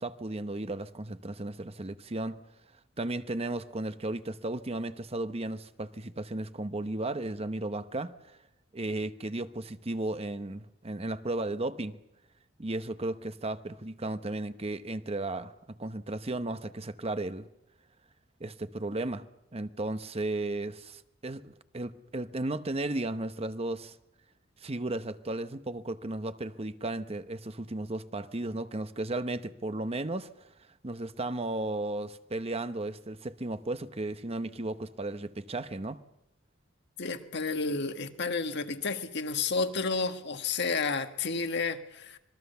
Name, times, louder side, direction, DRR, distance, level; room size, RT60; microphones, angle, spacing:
voice 1, 0.0-2.4 3.0-8.4 8.7-11.9 12.6-17.5 18.4-19.3 19.5-23.9 24.6-30.3 30.8-36.0, right 2 dB, 30° right, 0.9 m, -35 dB
voice 2, 37.0-42.2, left 4 dB, 60° left, 1.7 m, -31 dB
26.0 x 21.0 x 6.9 m
head